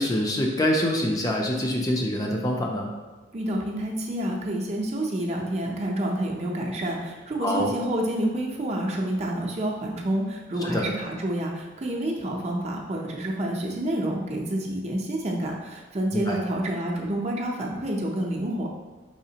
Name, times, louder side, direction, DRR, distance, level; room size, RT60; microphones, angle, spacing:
voice 1, 0.0-2.9 7.4-7.7 10.6-10.9 16.1-16.4, left 1 dB, 20° left, 0 dB, 0.4 m, -25 dB
voice 2, 3.3-18.7, right 1 dB, 35° right, 0 dB, 0.5 m, -28 dB
4.9 x 3.5 x 2.8 m, 1.3 s
head